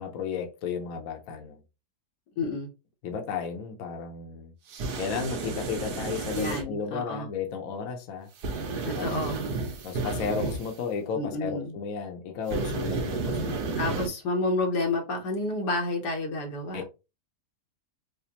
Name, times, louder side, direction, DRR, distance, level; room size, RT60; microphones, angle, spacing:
voice 1, 0.0-1.6 3.0-4.5 5.0-8.3 8.9-9.2 9.8-13.9 16.7-16.9, left 6 dB, 65° left, 1.1 m, -34 dB
voice 2, 2.4-2.7 6.3-7.3 8.8-9.4 11.1-11.7 13.8-16.8, left 2 dB, 85° left, 1.7 m, -30 dB
sound 1, 4.7-6.6 8.4-10.7 12.5-14.1, right 3 dB, 80° right, 1.4 m, -31 dB
4.9 x 2.1 x 2.8 m
omnidirectional pair, 1.7 m